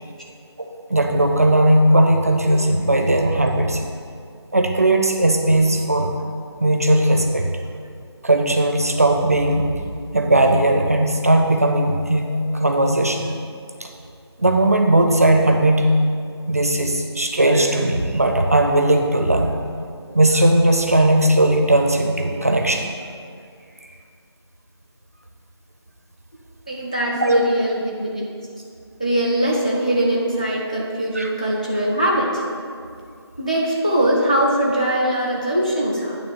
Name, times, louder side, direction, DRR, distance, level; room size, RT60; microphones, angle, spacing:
voice 1, 0.6-3.8 4.5-6.1 6.6-7.6 8.2-9.8 10.1-13.3 13.8-13.9 14.4-15.9 16.5-19.6 20.1-22.9 27.1-27.4 31.1-31.3, right 1 dB, 35° right, 3 dB, 0.6 m, -18 dB
voice 2, 26.7-28.3 29.0-32.4 33.4-36.2, right 1 dB, 15° left, -3 dB, 0.4 m, -21 dB
9.0 x 3.3 x 6.7 m, 2.3 s
figure-of-eight pair, 165°, 14 cm